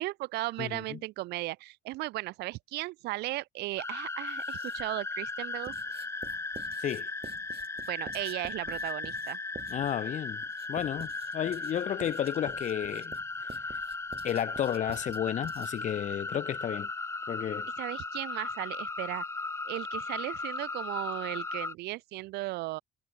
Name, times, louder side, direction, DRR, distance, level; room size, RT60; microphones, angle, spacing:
voice 1, 0.0-5.7 7.9-9.4 17.8-19.2 19.7-22.8, right 19 dB, 75° right, 0.4 m, -36 dB
voice 2, 0.6-1.0 6.8-7.1 9.7-10.4 10.7-13.2 13.4-13.5 14.2-16.9 17.3-17.7, left 10 dB, 45° left, 0.7 m, -32 dB
sound 1, 3.8-21.7, left 3 dB, 15° left, 1.1 m, -37 dB
Writing, 4.3-5.0 5.6-16.0, right 6 dB, 35° right, 1.9 m, -49 dB
cardioid pair, 110°, 17 cm